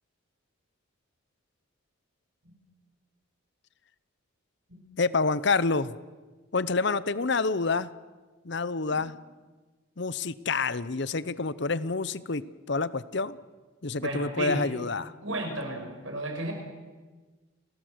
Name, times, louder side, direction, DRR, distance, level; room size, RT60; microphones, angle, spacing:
voice 1, 5.0-6.0 6.5-7.9 8.4-9.1 10.0-13.4 13.8-15.1, left 4 dB, 55° left, 17 dB, 0.8 m, -28 dB
voice 2, 13.9-14.6 15.2-16.5, right 1 dB, 70° right, 4 dB, 5.8 m, -34 dB
30.0 x 19.5 x 7.9 m, 1.3 s
head